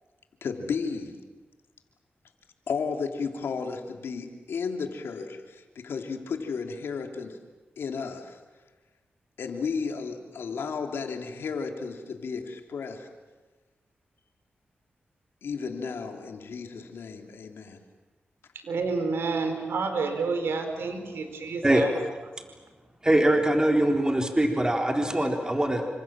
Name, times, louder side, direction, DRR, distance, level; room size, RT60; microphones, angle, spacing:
voice 1, 0.4-1.2 2.7-7.4 7.8-8.4 9.4-13.1 15.4-17.8, left 5 dB, 85° left, 4 dB, 3.0 m, -33 dB
voice 2, 18.6-21.9, right 4 dB, 85° right, 6 dB, 4.6 m, -29 dB
voice 3, 21.6-22.0 23.0-25.9, right 1 dB, 20° right, 2 dB, 4.1 m, -23 dB
29.5 x 26.5 x 7.5 m, 1.3 s
cardioid pair, 65°, 4 cm